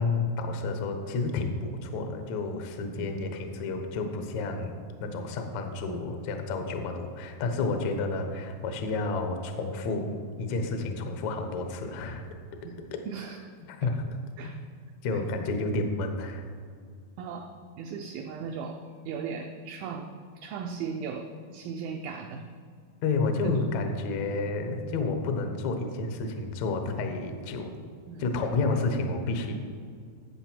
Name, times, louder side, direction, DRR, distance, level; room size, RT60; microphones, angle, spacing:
voice 1, 0.0-10.1 10.4-12.3 13.7-13.9 14.4-14.5 15.0-16.5 23.0-27.7 28.2-29.5, left 3 dB, 85° left, 5 dB, 1.5 m, -30 dB
voice 2, 13.1-13.5 13.8-13.9 14.4-14.6 15.1-15.2 17.2-20.1 20.4-22.5 23.4-23.5 28.1-28.6, right 6 dB, 90° right, 4 dB, 2.0 m, -38 dB
13.0 x 8.0 x 4.5 m, 2.1 s
omnidirectional pair, 4.8 m